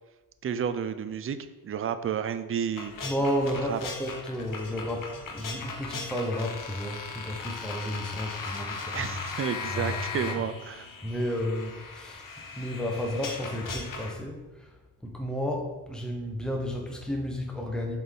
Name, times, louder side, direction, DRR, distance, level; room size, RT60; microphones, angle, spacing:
voice 1, 0.4-1.4 1.6-2.9 3.7-3.8 8.9-10.9, right 8 dB, 35° right, 11 dB, 0.4 m, -31 dB
sound 1, 2.8-14.1, left 4 dB, 55° left, 0.9 m, -38 dB
voice 2, 3.0-9.1 9.7-10.0 10.2-10.4 11.0-12.2 12.5-14.8 15.0-18.0, equal, ahead, 0 dB, 0.9 m, -32 dB
7.6 x 4.2 x 3.6 m, 1.1 s
wide cardioid pair, 140°, 39 cm